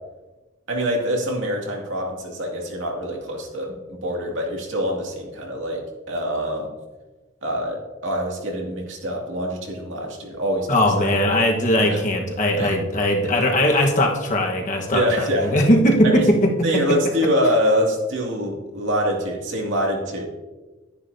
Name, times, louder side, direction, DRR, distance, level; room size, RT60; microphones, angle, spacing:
voice 1, 0.7-6.7 7.4-11.1 11.8-12.0 12.6-12.8 14.9-15.5 16.0-16.2 16.6-20.2, equal, 70° right, -1 dB, 2.4 m, -25 dB
voice 2, 10.7-16.8, left 1 dB, 40° left, 1 dB, 1.3 m, -19 dB
11.5 x 10.0 x 2.8 m, 1.2 s
head